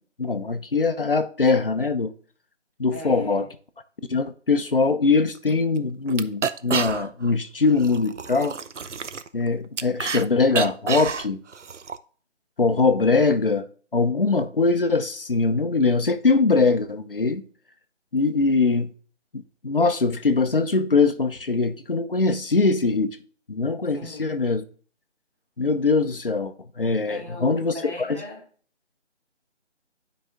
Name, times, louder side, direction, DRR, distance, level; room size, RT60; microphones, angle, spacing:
voice 1, 0.2-2.1 2.8-3.5 4.1-8.6 9.3-11.4 12.6-13.6 13.9-17.4 18.1-18.9 19.3-23.2 23.5-24.6 25.6-28.2, left 4 dB, 50° left, 0.7 m, -22 dB
voice 2, 2.9-3.5 23.9-24.3 27.1-28.4, left 2 dB, 15° right, 1.2 m, -37 dB
sound 1, 5.4-5.5 5.8-5.9 6.1-7.3 7.6-10.3 10.5-12.0, right 6 dB, 75° right, 0.6 m, -29 dB
8.9 x 5.1 x 3.4 m
figure-of-eight pair, 170°, 36 cm